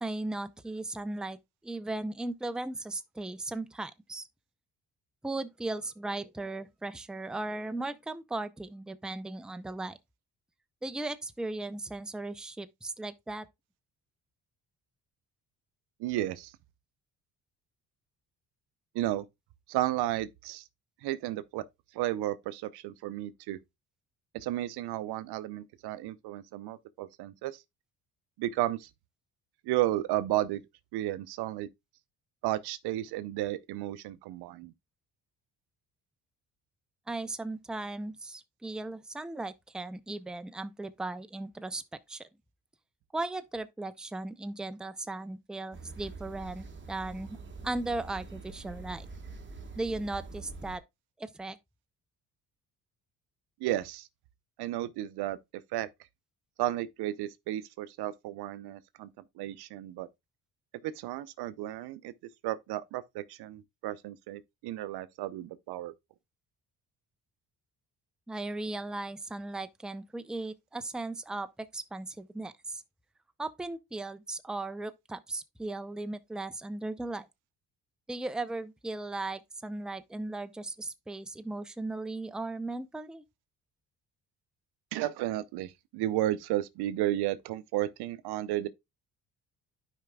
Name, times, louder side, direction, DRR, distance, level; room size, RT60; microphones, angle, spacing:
voice 1, 0.0-1.4 1.6-4.2 5.2-10.0 10.8-13.5 37.1-42.3 43.1-47.4 47.6-49.1 49.8-50.8 51.2-51.6 68.3-72.8 73.4-77.3 78.1-83.2, right 2 dB, ahead, 0.5 m, -37 dB
voice 2, 16.0-16.5 18.9-19.2 19.7-20.6 21.0-21.6 21.9-23.6 24.3-27.6 28.4-28.9 29.6-30.6 30.9-31.7 32.4-34.7 53.6-54.1 54.6-55.4 55.7-55.9 56.6-59.1 59.4-60.1 60.8-62.1 62.4-65.9 84.9-88.7, right 14 dB, 75° right, 0.7 m, -33 dB
sound 1, 45.7-50.8, right 4 dB, 30° right, 1.3 m, -45 dB
12.0 x 5.0 x 2.2 m
supercardioid pair, 65°, 39 cm